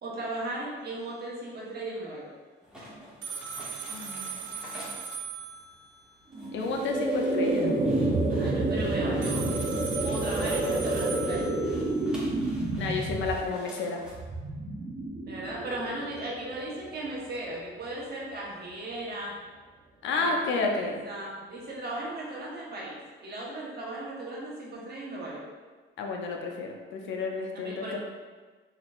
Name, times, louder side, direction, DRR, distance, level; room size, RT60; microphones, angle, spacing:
voice 1, 0.0-2.3 8.3-9.5 10.0-11.5 15.3-19.4 20.1-20.4 20.7-25.5 27.6-28.0, right 1 dB, 55° right, -4 dB, 1.2 m, -36 dB
sound 1, 2.6-14.1, equal, 5° right, 1.1 m, -49 dB
sound 2, 3.2-6.1 9.2-12.2, right 6 dB, 70° right, 0.6 m, -38 dB
voice 2, 3.9-4.4 6.5-7.7 12.8-14.0 20.0-21.0 26.0-28.0, left 3 dB, 75° left, 1 dB, 0.6 m, -31 dB
sound 3, 6.3-17.5, right 2 dB, 30° right, 0.6 m, -29 dB
4.1 x 3.1 x 2.5 m, 1.4 s
cardioid pair, 90°, 20 cm